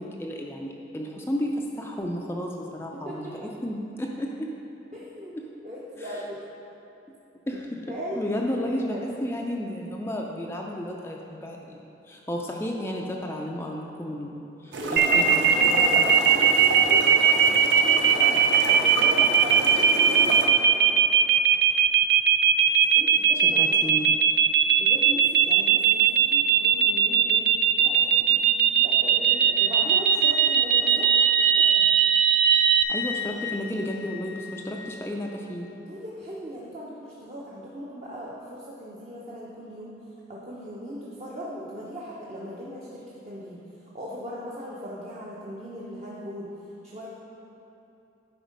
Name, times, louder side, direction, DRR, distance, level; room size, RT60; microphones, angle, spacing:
voice 1, 0.0-3.3 3.6-4.5 5.4-5.5 6.0-6.1 7.5-16.1 23.4-24.2 32.9-35.7, equal, 15° left, 0 dB, 0.4 m, -33 dB
voice 2, 2.9-3.5 4.9-6.4 7.7-8.4 8.6-9.0 14.8-21.0 22.9-23.9 24.8-27.5 27.8-31.9 35.9-40.0 40.3-43.6 43.9-46.5 46.8-47.1, equal, 35° right, -6 dB, 0.8 m, -38 dB
sound 1, 14.7-20.5, right 1 dB, 85° right, 0.8 m, -31 dB
sound 2, 15.0-32.8, right 8 dB, 55° right, 0.3 m, -19 dB
Wind instrument woodwind instrument, 29.3-35.2, left 10 dB, 80° left, 0.4 m, -37 dB
10.5 x 4.3 x 5.2 m, 2.9 s
head